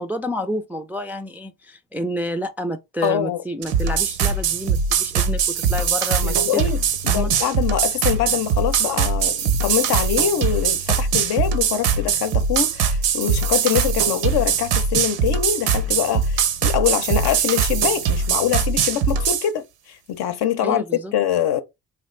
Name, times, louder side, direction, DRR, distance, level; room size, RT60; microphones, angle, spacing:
voice 1, 0.0-6.7 7.1-7.3 20.6-21.1, equal, 5° right, 0.3 m, -29 dB
voice 2, 3.0-3.4 6.2-20.8 21.1-21.6, left 10 dB, 65° left, 0.7 m, -24 dB
sound 1, 3.6-19.5, right 6 dB, 85° right, 0.7 m, -21 dB
3.4 x 2.5 x 3.2 m
cardioid pair, 75°, 41 cm